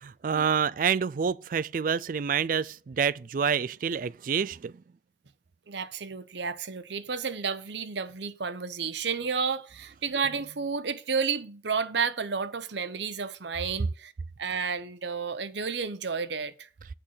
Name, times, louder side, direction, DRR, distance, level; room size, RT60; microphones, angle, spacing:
voice 1, 0.0-4.7, right 6 dB, 45° right, 0.3 m, -27 dB
voice 2, 5.7-14.1 14.4-16.7, right 5 dB, 70° right, 0.8 m, -31 dB
8.8 x 5.5 x 6.3 m
head